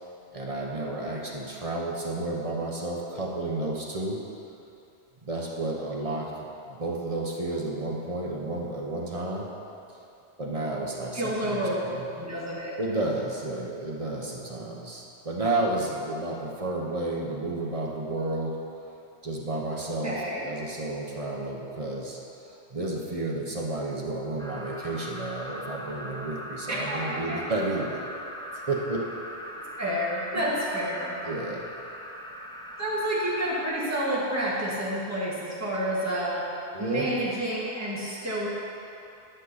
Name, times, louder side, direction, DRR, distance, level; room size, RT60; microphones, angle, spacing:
voice 1, 0.3-4.2 5.2-9.5 10.4-12.0 12.8-18.6 19.2-22.2 22.4-28.0 28.7-29.1 31.2-31.7 36.7-37.1, right 2 dB, 35° right, -2 dB, 0.9 m, -31 dB
voice 2, 11.1-11.8 12.2-12.7 20.0-20.4 26.7-27.4 29.8-31.1 32.8-36.4 36.8-38.5, right 1 dB, 15° right, -7 dB, 1.6 m, -29 dB
sound 1, 24.4-33.7, equal, 5° left, 0.5 m, -40 dB
10.0 x 6.3 x 4.1 m, 2.7 s
omnidirectional pair, 1.1 m